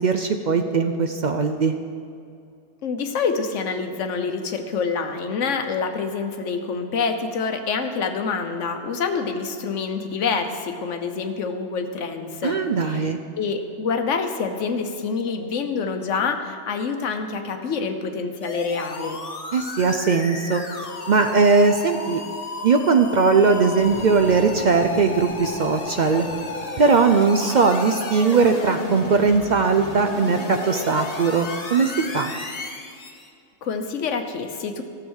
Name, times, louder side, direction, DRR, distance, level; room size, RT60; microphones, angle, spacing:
voice 1, 0.0-1.8 12.4-13.2 19.5-20.6 21.1-22.2 22.6-26.3 26.8-32.3, right 4 dB, 55° right, 6 dB, 0.5 m, -19 dB
voice 2, 2.8-13.1 13.4-19.2 33.6-34.8, left 5 dB, 80° left, 6 dB, 1.2 m, -27 dB
sound 1, 18.4-33.3, left 3 dB, 35° left, 0.9 m, -33 dB
13.5 x 7.1 x 6.3 m, 2.4 s
omnidirectional pair, 1.3 m